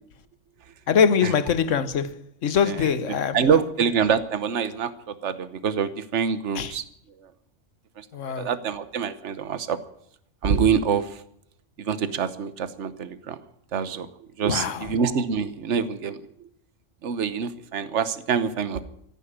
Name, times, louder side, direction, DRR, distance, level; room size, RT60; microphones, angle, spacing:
voice 1, 0.9-2.2 2.4-3.4 6.5-6.7 8.1-8.5 14.5-14.9, left 7 dB, 70° left, 1.4 m, -23 dB
voice 2, 2.6-6.8 7.2-7.3 8.0-8.1 8.4-9.8 10.4-11.2 11.8-13.4 13.7-16.5 17.0-18.8, right 6 dB, 65° right, 1.4 m, -26 dB
15.0 x 11.0 x 8.7 m
omnidirectional pair, 1.3 m